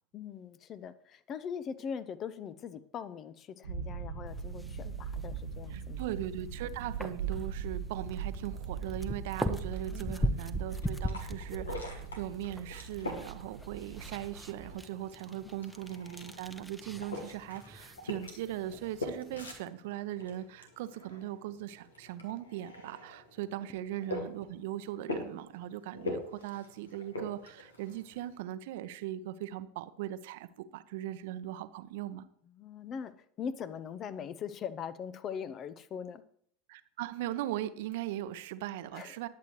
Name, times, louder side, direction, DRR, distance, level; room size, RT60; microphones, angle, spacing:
voice 1, 0.1-6.0 9.9-10.1 23.6-23.8 32.5-36.2 38.9-39.2, left 7 dB, 35° left, 15 dB, 0.8 m, -41 dB
sound 1, 3.6-14.8, right 6 dB, 75° right, 1.5 m, -40 dB
sound 2, 4.3-19.6, equal, 5° left, 1.0 m, -41 dB
voice 2, 5.7-32.2 36.7-39.3, right 13 dB, 60° right, 13 dB, 0.8 m, -39 dB
sound 3, 10.6-28.4, left 2 dB, 80° left, 2.1 m, -44 dB
20.0 x 8.1 x 3.2 m, 0.63 s
figure-of-eight pair, 80°, 0 cm